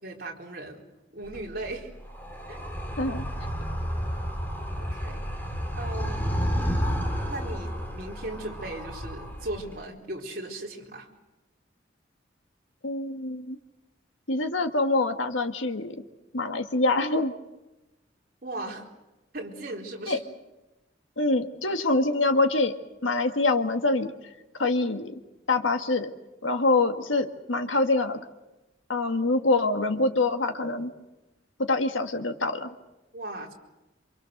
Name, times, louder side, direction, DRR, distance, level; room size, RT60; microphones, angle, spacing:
voice 1, 0.0-1.9 2.5-2.6 4.8-6.2 7.2-11.1 18.4-18.9 19.3-20.2 33.1-33.5, right 2 dB, 50° right, -1 dB, 4.1 m, -37 dB
Animal, 1.2-9.8, equal, 10° left, 3.0 m, -31 dB
voice 2, 12.8-13.6 14.3-15.9 16.3-17.3 20.1-20.2 21.2-22.7 23.0-24.1 24.6-25.1 25.5-26.1 26.4-28.2 28.9-30.9 31.7-32.7, left 2 dB, 90° left, 7 dB, 1.8 m, -25 dB
27.5 x 25.5 x 6.6 m, 1.0 s
head